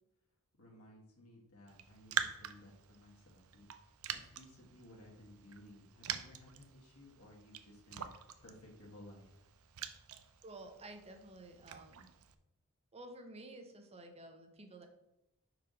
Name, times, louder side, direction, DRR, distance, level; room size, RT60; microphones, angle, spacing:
voice 1, 0.6-3.7 4.1-9.4, left 1 dB, 90° left, -3 dB, 1.7 m, -57 dB
Raindrop, 1.7-12.3, right 9 dB, 70° right, 0.5 m, -45 dB
voice 2, 10.4-12.1 12.9-14.9, right 2 dB, 30° right, 4 dB, 1.0 m, -52 dB
5.5 x 5.0 x 4.9 m, 0.89 s
head